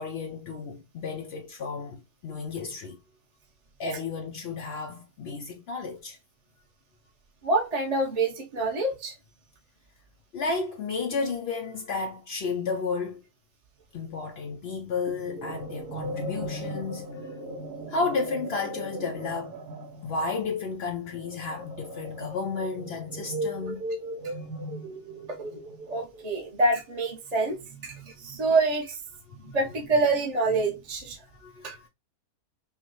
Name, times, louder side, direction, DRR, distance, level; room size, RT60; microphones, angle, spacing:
voice 1, 0.0-3.0 3.8-6.2 10.3-13.2 13.9-17.4 17.9-19.6 20.0-23.9 24.3-24.5 29.3-29.6 31.3-31.9, left 4 dB, 75° left, 0.5 m, -32 dB
voice 2, 7.4-9.1 25.3-25.4 25.9-27.6 27.8-29.0 29.5-31.2 31.6-31.8, right 3 dB, 30° right, 0.8 m, -26 dB
sound 1, 15.1-26.4, right 1 dB, 85° right, 1.4 m, -37 dB
5.4 x 2.2 x 3.0 m
omnidirectional pair, 1.7 m